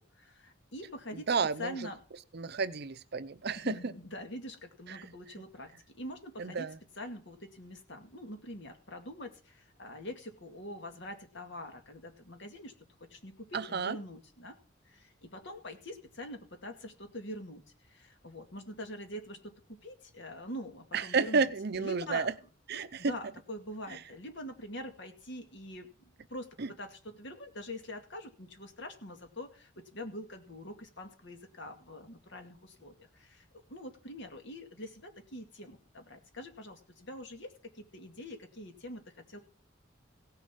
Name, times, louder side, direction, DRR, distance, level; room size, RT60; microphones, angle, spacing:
voice 1, 0.2-1.3 1.6-2.0 3.5-12.8 13.1-14.6 14.9-22.3 22.7-25.9 26.3-39.4, left 1 dB, 65° left, 6 dB, 2.2 m, -44 dB
voice 2, 1.1-1.8 2.3-3.9 4.9-5.1 6.4-6.8 13.5-14.0 20.9-22.3 22.7-23.1 23.9-24.0 26.6-26.7, right 5 dB, 55° right, 14 dB, 0.7 m, -31 dB
16.5 x 6.9 x 6.2 m, 0.38 s
head